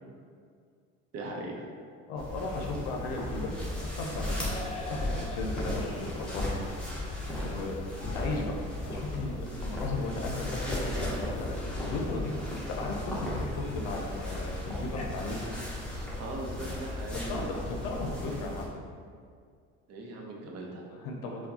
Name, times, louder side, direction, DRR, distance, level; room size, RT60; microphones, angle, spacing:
voice 1, 1.1-1.6 16.2-17.3 19.9-20.8, right 2 dB, 55° right, -1 dB, 0.7 m, -39 dB
voice 2, 2.1-3.5 3.8-6.6 7.4-7.8 8.1-8.6 8.8-12.3 12.7-15.5 17.1-18.7 20.9-21.5, left 2 dB, 85° left, 0 dB, 0.6 m, -36 dB
sound 1, 2.2-18.7, left 1 dB, 5° left, 0.8 m, -36 dB
sound 2, 3.3-15.0, left 1 dB, 20° left, 0.4 m, -45 dB
4.4 x 2.2 x 2.7 m, 2.1 s
supercardioid pair, 100°, 31 cm